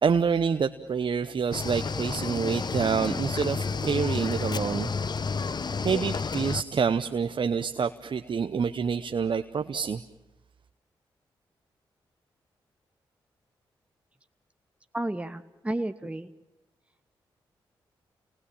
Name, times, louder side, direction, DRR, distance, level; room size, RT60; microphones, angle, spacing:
voice 1, 0.0-4.9 5.8-10.0, right 6 dB, 55° right, 9 dB, 0.9 m, -27 dB
Cricket / Waves surf, 1.5-6.6, left 5 dB, 45° left, 0.9 m, -30 dB
voice 2, 14.9-16.3, right 1 dB, 10° right, 9 dB, 1.2 m, -32 dB
28.0 x 19.5 x 8.6 m, 1.0 s
supercardioid pair, 45°, 10 cm